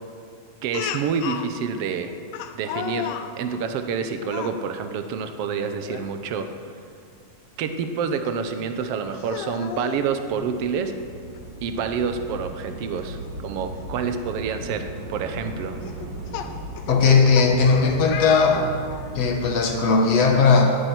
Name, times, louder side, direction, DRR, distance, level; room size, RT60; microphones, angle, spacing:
voice 1, 0.6-2.1 2.6-6.5 7.6-10.9 11.6-15.8, right 6 dB, 75° right, 8 dB, 1.4 m, -28 dB
Speech, 0.7-1.5 2.3-3.3 4.2-4.6 5.8-6.1 6.5-6.6 8.3-8.4 9.2-10.0 11.4-11.5 11.8-11.9 13.8-13.9 14.5-14.7 15.8-19.2, left 8 dB, 85° left, 2.5 m, -33 dB
Train / Subway metro underground, 7.3-7.6 7.8-20.4, right 2 dB, 60° right, 2.6 m, -38 dB
voice 2, 16.9-18.7 19.1-20.8, left 4 dB, 55° left, 2 dB, 2.2 m, -18 dB
13.5 x 10.0 x 9.4 m, 2.3 s
omnidirectional pair, 4.0 m